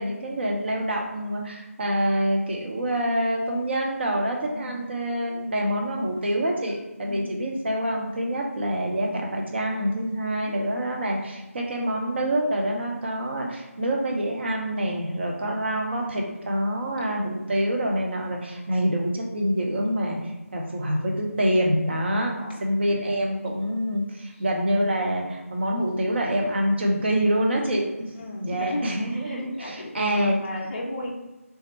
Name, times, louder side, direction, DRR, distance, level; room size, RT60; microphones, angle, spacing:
voice 1, 0.0-22.3 22.6-27.8 28.4-30.4, equal, 45° right, 0 dB, 0.7 m, -26 dB
voice 2, 4.5-4.8 7.0-7.2 10.2-10.6 15.5-15.7 22.3-22.6 24.3-24.4 28.2-31.1, left 1 dB, 30° left, -4 dB, 0.4 m, -36 dB
3.5 x 2.1 x 4.1 m, 1.1 s
figure-of-eight pair, 160°, 8 cm